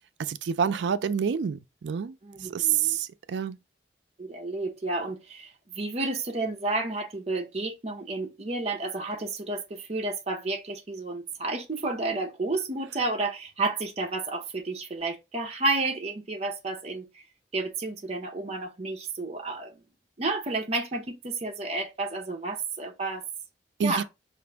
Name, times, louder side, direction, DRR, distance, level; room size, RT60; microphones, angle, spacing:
voice 1, 0.2-2.2 2.4-3.6 23.8-24.0, right 7 dB, 80° right, 0.4 m, -27 dB
voice 2, 2.2-3.0 4.2-17.2 17.5-19.8 20.2-23.2 23.8-24.0, right 3 dB, 35° right, 0.6 m, -31 dB
4.9 x 2.5 x 3.3 m
head